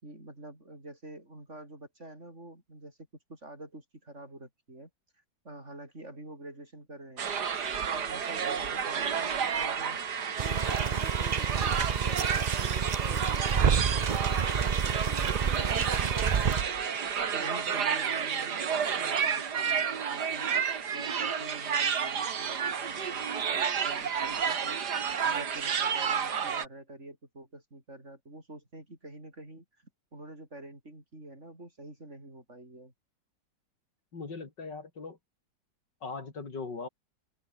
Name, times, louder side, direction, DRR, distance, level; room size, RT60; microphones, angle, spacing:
voice 1, 0.0-3.0 3.3-4.9 5.4-7.4 7.9-10.0 10.4-16.6 17.3-20.5 20.9-24.8 25.2-29.7 30.1-32.9, right 1 dB, 40° right, 7.3 m, -47 dB
sound 1, 7.2-26.7, right 7 dB, 65° right, 2.2 m, -31 dB
sound 2, 10.4-16.6, right 6 dB, 85° right, 0.3 m, -29 dB
voice 2, 34.1-35.2 36.0-36.9, left 4 dB, 70° left, 4.2 m, -39 dB
open air
omnidirectional pair, 1.9 m